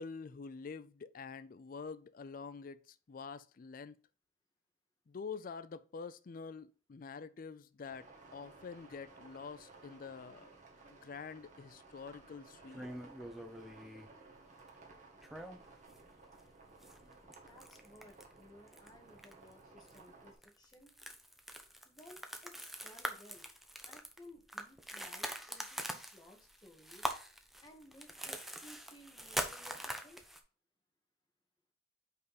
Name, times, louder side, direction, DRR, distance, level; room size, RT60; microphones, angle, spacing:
voice 1, 0.0-4.0 5.1-10.5 10.9-12.8, left 5 dB, 45° left, 0.4 m, -47 dB
sound 1, 7.8-20.4, right 3 dB, 40° right, 1.6 m, -58 dB
sound 2, 12.7-14.1 15.2-16.0 16.3-16.4 16.8-18.3 18.7-18.9 19.2-19.5 19.9-20.0 20.4-30.4, equal, ahead, 0.7 m, -43 dB
voice 2, 17.5-20.9 21.8-23.5 23.8-27.1 27.6-30.2, left 1 dB, 20° left, 1.6 m, -58 dB
5.5 x 5.1 x 4.0 m
head